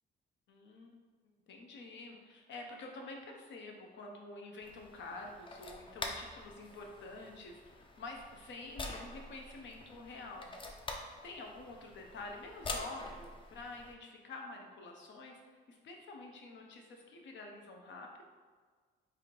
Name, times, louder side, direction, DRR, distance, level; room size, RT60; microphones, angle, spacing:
voice 1, 0.5-1.0 1.5-10.5 10.9-18.2, left 2 dB, 70° left, 2 dB, 0.8 m, -48 dB
sound 1, 4.6-13.9, left 2 dB, 25° left, 0.5 m, -46 dB
3.5 x 2.5 x 4.4 m, 1.5 s
cardioid pair, 90°, 20 cm